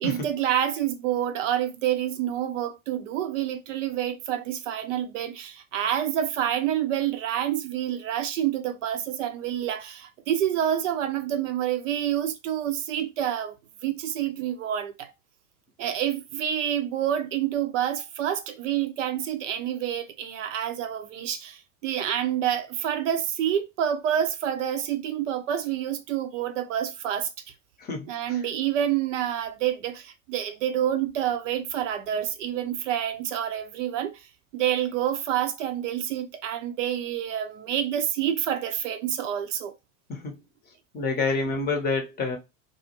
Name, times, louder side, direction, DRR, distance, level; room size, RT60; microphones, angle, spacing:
voice 1, 0.0-13.5 13.8-15.1 15.8-27.3 28.1-34.3 34.5-39.7, right 10 dB, 60° right, 0.5 m, -28 dB
voice 2, 27.8-28.4 40.1-40.3 40.9-42.4, left 3 dB, 25° left, 0.7 m, -28 dB
2.3 x 2.0 x 2.8 m
figure-of-eight pair, 75°, 42 cm